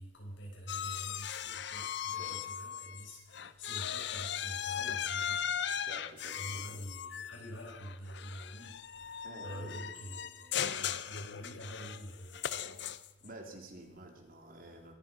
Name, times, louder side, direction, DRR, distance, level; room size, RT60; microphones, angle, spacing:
voice 1, 0.0-5.4 6.4-12.8, equal, 90° left, 0 dB, 5.4 m, -47 dB
sound 1, 0.7-3.1 3.3-13.3, left 9 dB, 65° left, 0.7 m, -38 dB
voice 2, 2.1-2.5 5.8-6.8 9.2-9.8 13.2-14.9, right 1 dB, 50° right, 2 dB, 3.4 m, -50 dB
23.0 x 9.6 x 5.5 m, 1.1 s
head